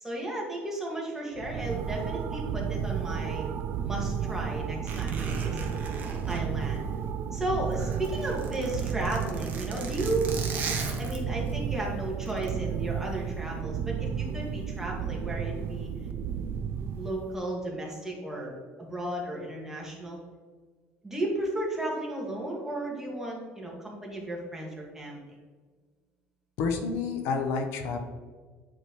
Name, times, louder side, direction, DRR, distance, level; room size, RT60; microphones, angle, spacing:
voice 1, 0.0-3.4 3.8-5.7 6.3-6.9 7.3-10.4 11.0-15.9 17.0-20.2 21.0-25.2, right 1 dB, 10° right, -2 dB, 1.9 m, -34 dB
sound 1, 1.4-17.4, right 7 dB, 55° right, 0.4 m, -33 dB
Zipper (clothing), 4.8-7.3 7.6-11.5 12.2-12.5, right 3 dB, 40° right, 1.2 m, -38 dB
voice 2, 26.6-28.0, left 4 dB, 75° left, 5 dB, 0.9 m, -29 dB
8.8 x 4.6 x 3.1 m, 1.5 s
cardioid pair, 120°, 5 cm